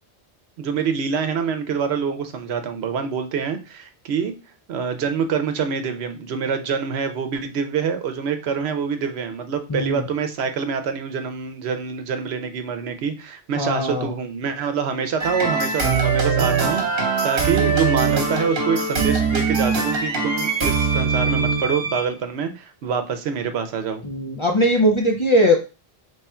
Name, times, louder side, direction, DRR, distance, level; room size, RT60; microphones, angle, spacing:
voice 1, 0.6-4.4 4.7-24.1, right 6 dB, 80° right, 8 dB, 0.9 m, -26 dB
voice 2, 9.7-10.0 13.6-14.1 24.0-25.6, equal, 40° left, 1 dB, 0.4 m, -19 dB
sound 1, 15.2-22.1, right 4 dB, 65° right, 1.1 m, -22 dB
3.1 x 2.3 x 4.2 m, 0.31 s
omnidirectional pair, 1.1 m